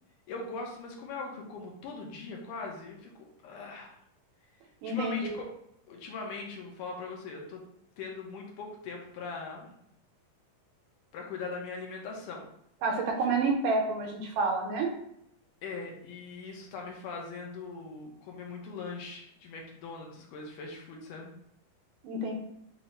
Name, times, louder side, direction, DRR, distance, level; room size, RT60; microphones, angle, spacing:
voice 1, 0.3-3.1 3.4-4.0 4.8-5.5 5.9-7.6 8.0-9.7 11.1-12.5 15.6-21.3, left 4 dB, 75° left, 0 dB, 2.1 m, -40 dB
voice 2, 4.8-5.3 12.8-14.9 22.0-22.3, right 3 dB, 75° right, 1 dB, 2.1 m, -29 dB
5.6 x 2.0 x 4.2 m, 0.75 s
omnidirectional pair, 3.9 m